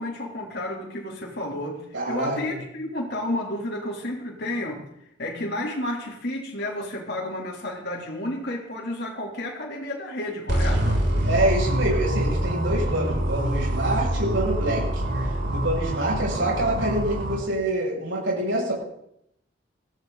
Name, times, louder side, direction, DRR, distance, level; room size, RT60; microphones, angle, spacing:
voice 1, 0.0-4.8 5.2-11.0, left 1 dB, 60° left, -2 dB, 3.7 m, -31 dB
voice 2, 1.9-2.6 11.2-15.0 15.5-18.7, right 1 dB, 85° right, -3 dB, 7.5 m, -26 dB
sound 1, 10.5-17.3, right 1 dB, 65° right, 7.5 m, -25 dB
21.5 x 16.0 x 4.2 m, 0.77 s
head